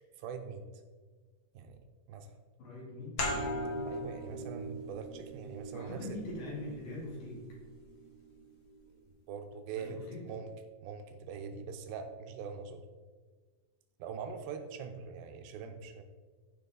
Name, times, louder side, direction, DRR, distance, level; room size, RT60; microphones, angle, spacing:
voice 1, 0.2-0.7 1.5-1.8 2.1-2.4 3.9-6.1 9.3-10.0 10.3-10.5 10.8-12.8 14.0-16.0, right 6 dB, 85° right, 7 dB, 2.6 m, -43 dB
voice 2, 2.6-3.3 5.7-7.4 9.8-10.2, left 2 dB, 75° left, -5 dB, 4.7 m, -42 dB
sound 1, 3.2-8.5, equal, 50° left, 1.2 m, -40 dB
14.5 x 5.2 x 4.0 m, 1.5 s
omnidirectional pair, 4.2 m